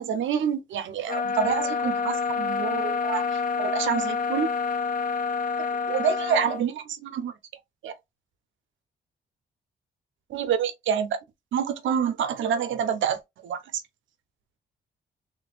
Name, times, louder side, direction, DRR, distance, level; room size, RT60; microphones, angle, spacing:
voice 1, 0.0-4.5 5.9-7.3 7.8-7.9 10.3-11.2 11.5-13.8, right 8 dB, 80° right, 0.9 m, -27 dB
sound 1, 1.1-6.6, left 5 dB, 45° left, 0.5 m, -27 dB
3.6 x 3.3 x 2.4 m
supercardioid pair, 60°, 20 cm